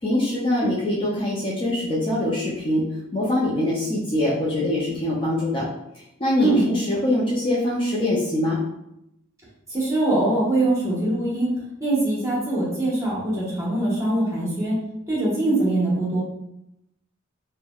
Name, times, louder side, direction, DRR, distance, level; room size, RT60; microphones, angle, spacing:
voice 1, 0.0-2.8 3.1-5.7 6.2-8.6, left 1 dB, 25° left, -5 dB, 0.4 m, -23 dB
voice 2, 9.7-11.5 11.8-14.8 15.1-16.2, right 2 dB, 15° right, -7 dB, 1.0 m, -22 dB
3.2 x 2.1 x 2.3 m, 0.83 s
head